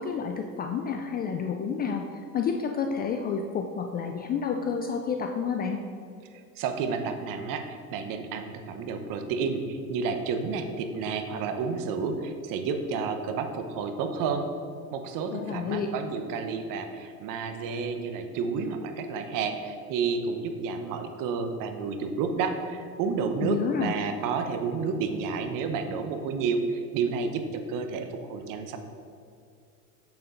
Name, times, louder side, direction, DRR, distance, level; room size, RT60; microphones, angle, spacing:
voice 1, 0.0-5.8 15.3-15.9 23.4-24.0, left 6 dB, 25° left, 4 dB, 0.3 m, -30 dB
voice 2, 6.6-14.4 14.9-28.8, right 5 dB, 45° right, 7 dB, 1.0 m, -30 dB
7.7 x 6.9 x 3.8 m, 2.5 s
hypercardioid pair, 95°, 45 cm